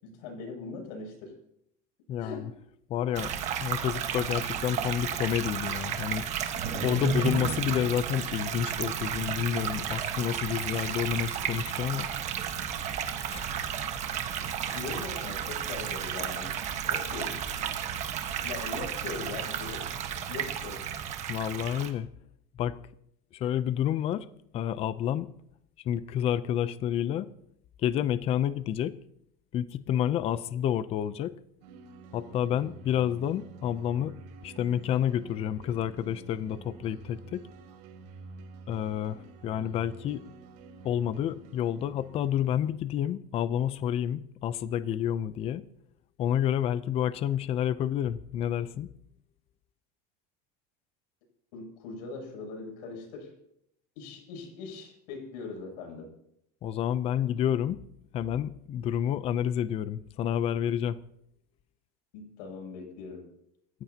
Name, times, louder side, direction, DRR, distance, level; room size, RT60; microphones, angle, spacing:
voice 1, 0.0-1.3 2.2-2.5 6.7-7.1 14.7-16.5 16.9-17.4 18.4-19.9 20.3-20.8 51.5-53.3 54.0-56.1 62.1-63.3, left 4 dB, 85° left, 7.7 m, -40 dB
voice 2, 2.1-2.5 2.9-3.3 3.6-6.3 6.8-12.1 13.3-13.5 21.3-22.1 22.6-22.8 23.3-24.3 24.5-25.3 25.8-27.3 27.8-29.0 29.5-31.3 32.1-34.2 34.4-37.4 38.7-40.2 40.8-45.6 46.2-48.9 56.6-57.8 58.1-61.0, left 10 dB, 30° left, 0.5 m, -29 dB
sound 1, 3.1-21.9, right 8 dB, 35° right, 1.4 m, -33 dB
sound 2, 31.6-42.8, right 4 dB, 85° right, 3.6 m, -49 dB
28.0 x 15.0 x 2.9 m
cardioid pair, 165°, 20 cm